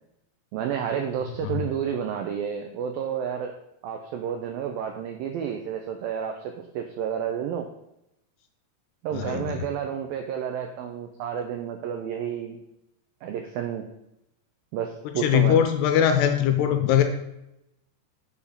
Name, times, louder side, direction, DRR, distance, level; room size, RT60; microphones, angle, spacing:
voice 1, 0.5-3.6 3.8-7.7 9.0-12.6 13.2-13.9 14.7-15.6, right 8 dB, 85° right, 4 dB, 2.0 m, -30 dB
voice 2, 9.1-9.6 15.2-17.0, left 9 dB, 80° left, 6 dB, 2.7 m, -21 dB
7.0 x 6.7 x 5.6 m, 0.85 s
omnidirectional pair, 5.0 m